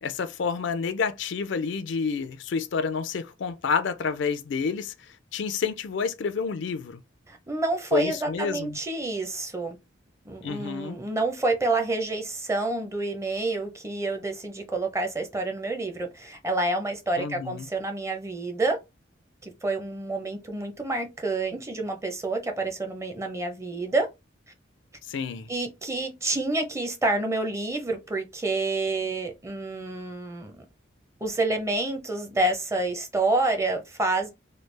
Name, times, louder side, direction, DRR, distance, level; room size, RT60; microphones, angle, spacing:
voice 1, 0.0-4.9 5.3-7.0 7.9-8.8 10.4-11.0 17.2-17.7 25.1-25.5, left 5 dB, 65° left, 0.4 m, -29 dB
voice 2, 7.3-9.8 10.2-18.8 19.4-24.1 25.5-30.7 31.2-34.3, right 2 dB, 15° right, 0.6 m, -28 dB
3.2 x 2.3 x 3.2 m
head